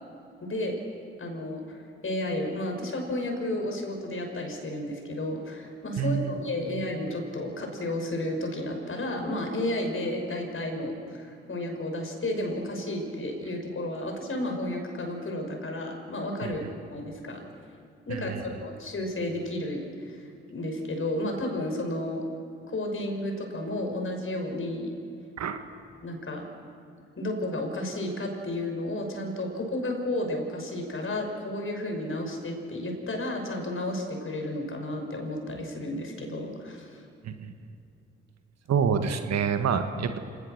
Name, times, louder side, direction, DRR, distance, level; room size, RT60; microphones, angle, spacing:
voice 1, 0.4-0.8 1.2-16.6 16.9-17.4 18.1-22.2 22.7-24.9 26.0-26.5 27.2-37.1, left 1 dB, 45° left, 3 dB, 6.0 m, -32 dB
voice 2, 6.0-6.3 16.4-16.5 18.1-18.4 25.4-25.6 37.2-37.5 38.7-40.2, right 7 dB, 60° right, 7 dB, 1.7 m, -27 dB
28.0 x 18.5 x 6.7 m, 2.7 s
hypercardioid pair, 45°, 30 cm